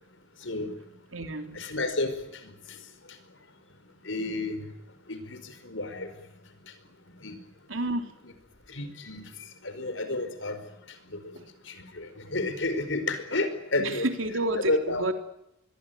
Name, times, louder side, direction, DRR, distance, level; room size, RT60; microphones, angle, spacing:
voice 1, 0.4-0.8 1.5-2.8 3.1-3.2 4.0-4.7 5.1-6.1 7.2-7.4 8.2-8.3 8.7-10.6 10.9-11.2 11.6-14.1 14.6-15.0, left 2 dB, 70° left, 11 dB, 4.9 m, -31 dB
voice 2, 1.1-1.6 7.7-8.1 11.3-11.4 13.8-15.1, right 1 dB, 85° right, 6 dB, 3.5 m, -30 dB
25.5 x 22.5 x 9.4 m, 0.86 s
head